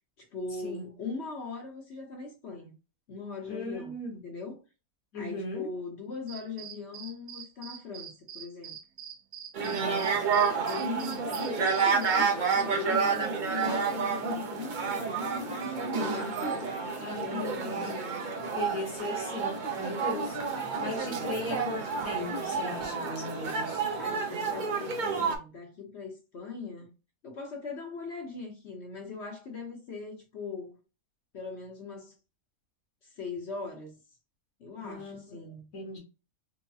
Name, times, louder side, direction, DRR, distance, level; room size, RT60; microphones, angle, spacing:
voice 1, 0.2-2.8 3.1-3.9 4.2-4.6 5.1-8.8 9.6-18.2 24.0-26.9 27.2-30.8 31.3-32.1 33.0-34.0 34.6-35.7, left 4 dB, 55° left, 1.0 m, -40 dB
voice 2, 3.5-4.2 5.1-5.6 9.6-10.0 16.9-17.9 18.5-23.8 34.8-35.4 35.7-36.0, left 2 dB, 75° left, 1.8 m, -38 dB
sound 1, 6.3-12.2, right 8 dB, 80° right, 1.1 m, -44 dB
sound 2, 9.5-25.4, right 5 dB, 50° right, 0.6 m, -30 dB
4.6 x 2.1 x 2.7 m
omnidirectional pair, 1.5 m